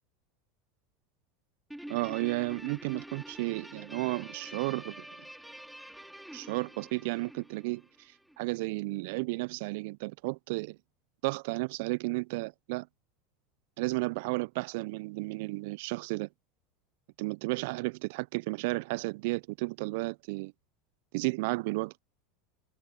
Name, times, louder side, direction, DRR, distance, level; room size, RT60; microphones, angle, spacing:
Guitar, 1.7-8.4, right 1 dB, 5° right, 2.7 m, -47 dB
voice 1, 1.9-5.0 6.3-10.8 11.2-12.9 13.8-16.3 17.2-20.5 21.1-22.0, right 25 dB, 60° right, 0.9 m, -33 dB
figure-of-eight pair, 80°, 0 cm